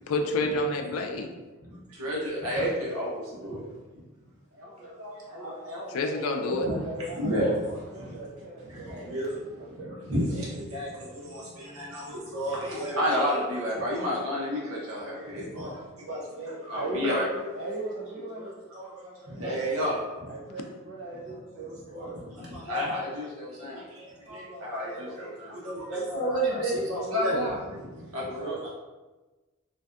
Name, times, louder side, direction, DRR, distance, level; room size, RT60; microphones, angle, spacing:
voice 1, 0.1-1.3 5.9-6.7, left 2 dB, 80° left, 4 dB, 0.3 m, -28 dB
voice 2, 1.9-3.6 4.6-6.8 7.1-8.2 8.7-17.2 17.5-17.7 18.4-20.3 21.9-22.1 22.4-28.7, equal, 80° right, -5 dB, 0.8 m, -31 dB
voice 3, 6.3-10.1 16.7-18.5 20.3-22.2 28.1-28.7, right 2 dB, 50° right, -6 dB, 0.4 m, -37 dB
2.5 x 2.2 x 2.3 m, 1.2 s
head